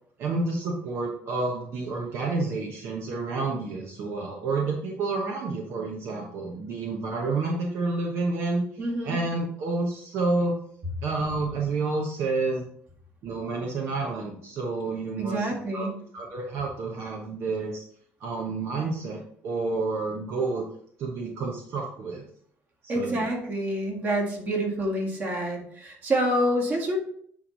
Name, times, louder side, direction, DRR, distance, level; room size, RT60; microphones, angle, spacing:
voice 1, 0.2-8.6 9.0-10.6 11.0-12.6 13.2-15.9 16.1-17.8 18.2-20.7 21.0-22.2 22.8-23.2, right 3 dB, 60° right, 0 dB, 1.1 m, -29 dB
voice 2, 8.8-9.2 15.2-16.0 22.9-27.0, right 1 dB, 35° right, 0 dB, 2.0 m, -27 dB
9.5 x 3.3 x 4.0 m, 0.63 s
cardioid pair, 130°, 5 cm